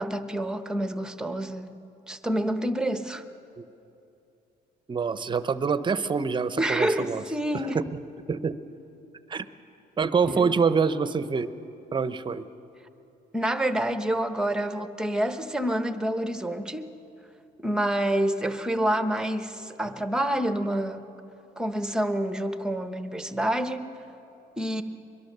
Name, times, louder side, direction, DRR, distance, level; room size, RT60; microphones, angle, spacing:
voice 1, 0.0-1.8 2.1-3.2 6.6-7.8 10.3-10.5 13.3-16.9 17.6-21.0 21.6-23.9 24.6-24.8, right 1 dB, 5° right, 9 dB, 1.0 m, -28 dB
voice 2, 4.9-7.2 7.5-7.7 8.3-8.5 9.3-9.5 10.0-11.5 11.9-12.4, right 5 dB, 30° right, 13 dB, 0.8 m, -25 dB
22.5 x 22.0 x 6.7 m, 2.9 s
cardioid pair, 110°, 17 cm